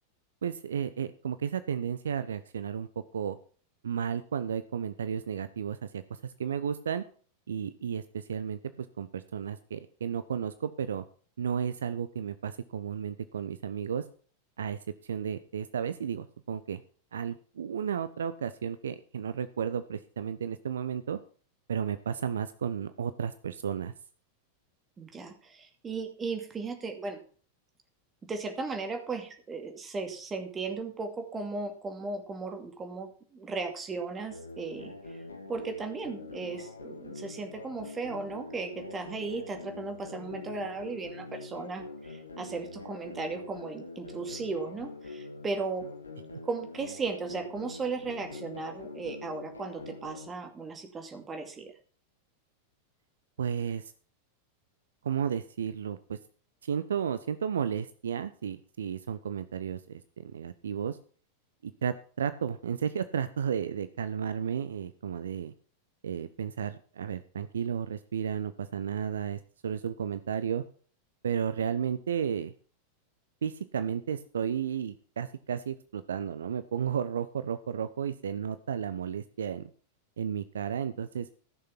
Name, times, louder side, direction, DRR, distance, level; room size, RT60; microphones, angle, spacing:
voice 1, 0.4-2.9 3.1-3.4 3.8-7.0 7.5-11.0 11.4-14.0 14.6-16.8 17.1-21.2 21.7-23.9 53.4-53.9 55.0-56.2 56.6-61.0 61.6-65.5 66.0-70.6 71.2-72.5 73.4-79.7 80.2-81.3, right 8 dB, 65° right, 13 dB, 0.6 m, -33 dB
voice 2, 25.0-27.2 28.2-35.2 35.5-45.9 46.4-51.7, right 4 dB, 20° right, 5 dB, 2.4 m, -36 dB
sound 1, 34.3-50.3, left 3 dB, 80° left, 1.3 m, -44 dB
14.5 x 6.6 x 6.0 m, 0.43 s
figure-of-eight pair, 90°, 0 cm